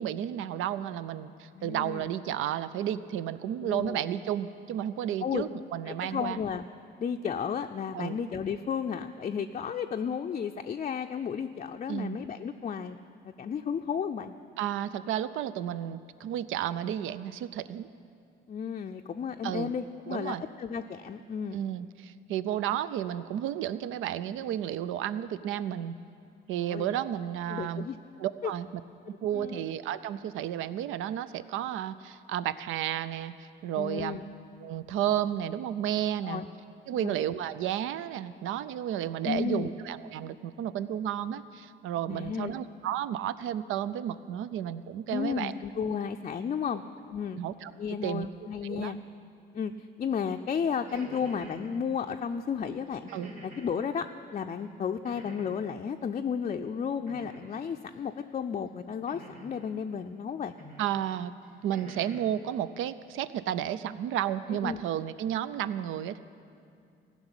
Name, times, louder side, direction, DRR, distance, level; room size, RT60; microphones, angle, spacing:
voice 1, 0.0-6.4 7.9-8.2 11.9-12.2 14.6-17.9 19.4-19.7 20.1-20.4 21.5-26.0 26.5-27.9 28.2-28.7 29.1-34.2 34.6-36.4 36.9-45.5 47.4-47.7 48.0-48.3 48.6-48.9 53.1-53.3 60.8-61.3 61.6-66.2, right 11 dB, 85° right, 15 dB, 0.5 m, -32 dB
voice 2, 1.5-2.0 3.6-4.0 5.2-5.5 5.9-6.6 7.0-13.0 13.2-14.4 18.5-21.6 26.6-26.9 27.5-28.0 28.4-28.5 29.3-29.6 33.8-34.2 36.2-36.5 37.0-37.2 39.2-39.7 42.1-42.6 45.1-46.8 47.1-47.4 47.8-49.0 49.5-53.1 53.4-60.5 64.6-64.8, left 7 dB, 35° left, 4 dB, 0.4 m, -33 dB
sound 1, 50.7-51.6 53.1-53.8 55.0-55.7 57.1-57.6 59.1-59.7 60.6-60.9 61.4-62.3, right 1 dB, 35° right, 3.5 m, -47 dB
15.5 x 6.1 x 9.8 m, 2.5 s
cardioid pair, 90°, 20 cm